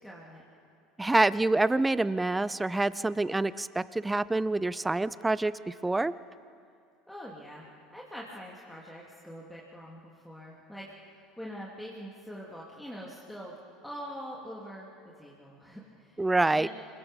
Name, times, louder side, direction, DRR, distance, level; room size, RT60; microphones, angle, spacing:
voice 1, 0.0-0.4 7.1-14.9 15.2-16.2 16.6-16.7, equal, 5° left, -4 dB, 3.3 m, -44 dB
voice 2, 1.0-6.1 16.2-16.7, right 2 dB, 10° right, 18 dB, 0.6 m, -26 dB
28.0 x 23.0 x 5.5 m, 2.4 s
figure-of-eight pair, 70°, 0 cm